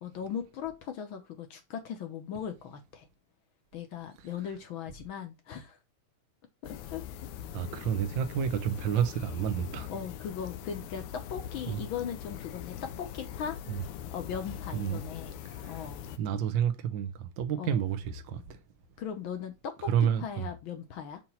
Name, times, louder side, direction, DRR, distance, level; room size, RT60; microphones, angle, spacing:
voice 1, 0.0-3.1 3.7-5.8 6.6-7.0 9.9-13.6 14.1-15.3 15.6-16.0 17.5-17.8 19.0-21.2, left 8 dB, 65° left, 1.3 m, -38 dB
sound 1, 6.6-16.2, left 9 dB, 90° left, 2.1 m, -42 dB
voice 2, 7.5-9.9 11.7-11.8 13.7-13.8 14.7-15.0 15.5-15.8 16.2-18.6 19.9-20.4, right 8 dB, 75° right, 1.1 m, -30 dB
7.4 x 3.0 x 5.6 m
omnidirectional pair, 3.3 m